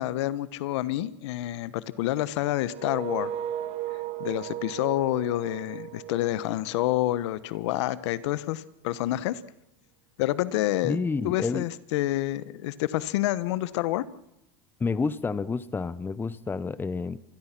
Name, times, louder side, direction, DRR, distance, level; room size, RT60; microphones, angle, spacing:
voice 1, 0.0-3.3 4.2-9.4 10.2-11.0 11.2-14.0, left 15 dB, 75° left, 17 dB, 1.1 m, -28 dB
sound 1, 2.7-7.5, right 11 dB, 40° right, 2.3 m, -36 dB
voice 2, 10.8-11.7 14.8-17.2, left 4 dB, 15° left, 17 dB, 0.8 m, -29 dB
26.5 x 20.0 x 6.0 m, 0.86 s
supercardioid pair, 120°, 15 cm